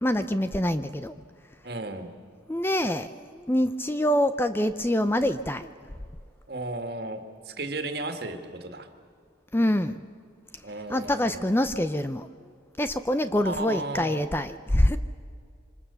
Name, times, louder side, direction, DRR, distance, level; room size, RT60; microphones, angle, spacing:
voice 1, 0.0-1.1 2.5-5.7 9.5-10.0 10.9-12.3 12.8-15.0, left 1 dB, 10° left, 11 dB, 0.5 m, -25 dB
voice 2, 1.6-2.1 6.5-8.9 10.6-11.4 13.4-14.2, right 2 dB, 55° right, 7 dB, 2.1 m, -34 dB
26.5 x 25.5 x 7.0 m, 2.2 s
head